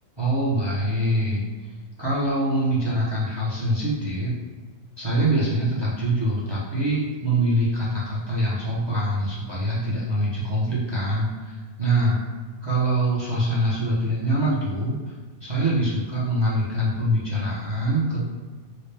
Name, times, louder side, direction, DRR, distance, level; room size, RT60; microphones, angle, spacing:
voice 1, 0.2-1.4 2.0-4.4 5.0-12.2 12.6-15.1 15.4-18.3, right 1 dB, 35° right, -7 dB, 0.4 m, -24 dB
4.4 x 2.3 x 3.3 m, 1.4 s
omnidirectional pair, 1.8 m